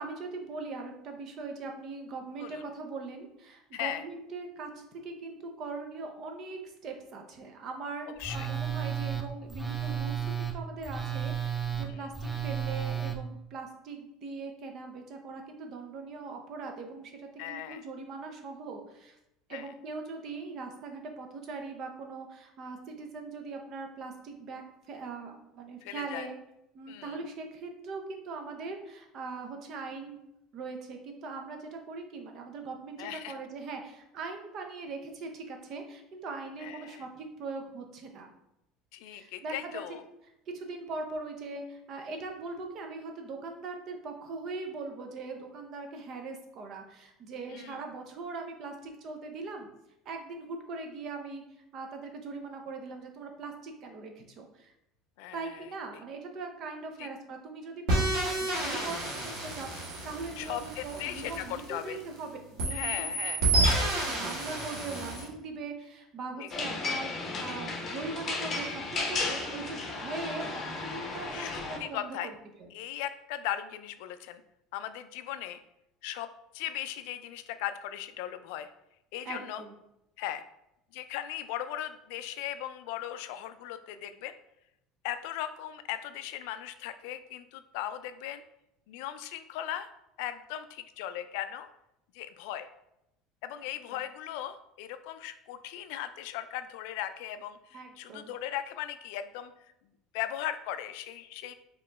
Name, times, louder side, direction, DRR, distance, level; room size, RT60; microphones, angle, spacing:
voice 1, 0.0-19.2 19.5-26.4 26.7-30.2 30.5-38.3 39.1-39.8 40.5-49.7 50.0-51.4 51.7-54.7 55.3-63.2 63.6-63.7 64.1-72.3 72.6-72.7 79.2-79.7 93.9-94.0 97.7-98.3, right 3 dB, 40° right, 4 dB, 0.7 m, -41 dB
voice 2, 3.7-4.0 8.2-8.5 11.9-12.1 17.4-17.8 19.5-19.7 25.8-26.3 26.9-27.2 33.0-33.3 36.6-37.0 38.9-40.0 47.5-47.8 55.2-55.6 57.0-57.1 58.7-58.9 60.4-62.0 62.7-63.4 66.4-66.5 71.3-72.3 72.7-74.4 74.7-75.6 76.0-76.3 76.5-78.7 79.1-79.6 80.2-80.4 80.9-84.3 85.0-88.4 88.9-89.9 90.2-91.7 92.1-92.7 93.4-99.5 100.1-101.5, left 12 dB, 75° left, 11 dB, 0.4 m, -38 dB
Telephone, 8.2-13.2, right 8 dB, ahead, 0.4 m, -33 dB
sound 1, 57.9-62.2 62.6-65.3, right 2 dB, 70° right, 1.7 m, -30 dB
sound 2, 66.5-71.8, left 3 dB, 25° left, 0.9 m, -34 dB
4.9 x 3.0 x 3.4 m, 0.84 s
cardioid pair, 165°, 0 cm